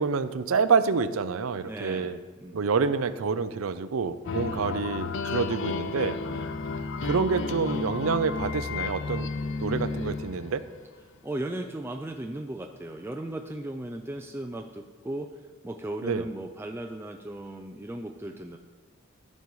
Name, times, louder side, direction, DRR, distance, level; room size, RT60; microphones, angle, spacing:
voice 1, 0.0-2.2 2.5-6.2 7.0-9.3 9.6-10.6 16.0-16.3, right 5 dB, 90° right, 13 dB, 0.5 m, -27 dB
voice 2, 1.6-2.1 2.4-2.7 4.3-4.6 5.3-5.5 6.2-6.5 11.2-18.6, right 1 dB, 10° right, 4 dB, 0.4 m, -37 dB
sound 1, 4.2-10.8, left 4 dB, 60° left, 0.5 m, -32 dB
15.0 x 5.4 x 4.7 m, 1.4 s
head